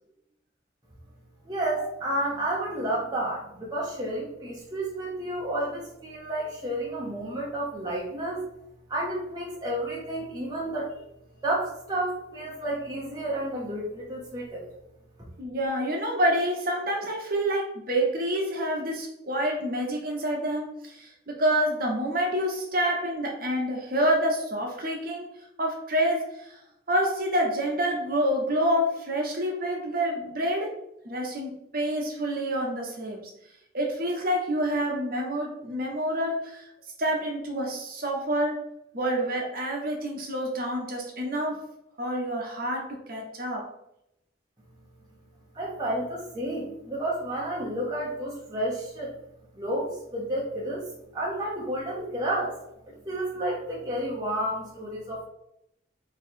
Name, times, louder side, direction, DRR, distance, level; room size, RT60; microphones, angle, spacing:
voice 1, 1.5-8.5 8.9-11.0 11.4-14.7 45.5-49.1 49.6-50.8 51.1-52.6 52.9-55.2, right 1 dB, 20° right, -5 dB, 0.6 m, -31 dB
voice 2, 15.4-25.3 25.6-26.6 26.9-30.7 31.0-33.2 33.7-36.7 37.0-38.6 38.9-41.6 42.0-43.6, equal, 50° right, 0 dB, 0.9 m, -27 dB
3.0 x 2.7 x 4.3 m, 0.81 s
head